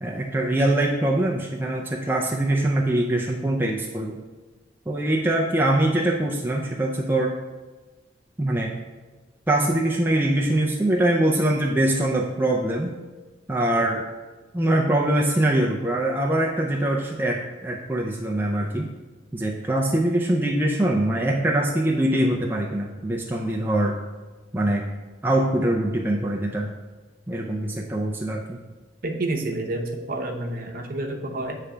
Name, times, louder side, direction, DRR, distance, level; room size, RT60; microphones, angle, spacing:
voice 1, 0.0-4.2 4.9-7.3 8.4-8.8 9.5-12.9 13.5-14.0 14.5-18.9 19.3-24.0 24.5-24.8 25.2-26.7 27.3-28.6, right 1 dB, 10° right, -2 dB, 0.4 m, -23 dB
voice 2, 29.0-31.6, right 2 dB, 50° right, 2 dB, 0.8 m, -29 dB
8.1 x 3.3 x 4.9 m, 1.3 s
head